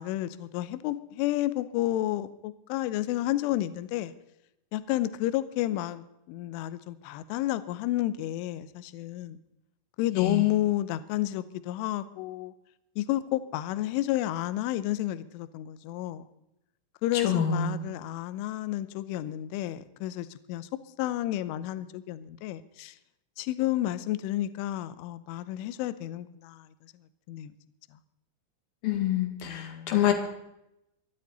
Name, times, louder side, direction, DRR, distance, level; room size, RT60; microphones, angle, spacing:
voice 1, 0.0-4.1 4.7-9.4 10.0-12.5 13.0-16.2 17.0-20.7 21.0-22.9 23.4-26.7 27.3-27.5 29.5-29.9, left 14 dB, 80° left, 14 dB, 3.1 m, -31 dB
voice 2, 10.1-10.5 17.1-17.9 28.8-30.1, left 9 dB, 55° left, 5 dB, 3.2 m, -27 dB
25.5 x 12.0 x 4.0 m, 0.86 s
omnidirectional pair, 5.9 m